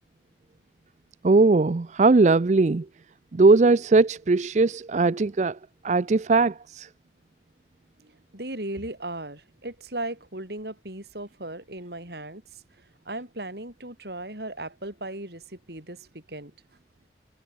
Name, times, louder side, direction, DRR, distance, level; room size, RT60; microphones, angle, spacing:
voice 1, 1.2-2.9 3.3-5.6 5.8-6.9, right 3 dB, 40° right, 0.4 m, -19 dB
voice 2, 8.3-12.4 13.1-16.5, right 1 dB, 65° right, 5.9 m, -36 dB
head